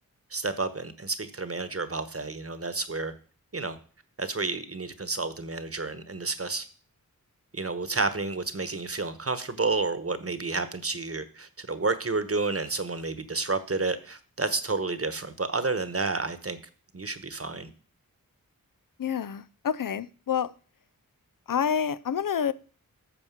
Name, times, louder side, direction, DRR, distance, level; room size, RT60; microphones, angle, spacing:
voice 1, 0.3-3.1 3.5-3.8 4.2-6.6 7.5-16.6 16.9-17.7, right 3 dB, 40° right, 1.2 m, -30 dB
voice 2, 19.0-20.5 21.5-22.5, left 8 dB, 65° left, 0.6 m, -28 dB
13.5 x 4.5 x 7.3 m
wide cardioid pair, 70°, 35 cm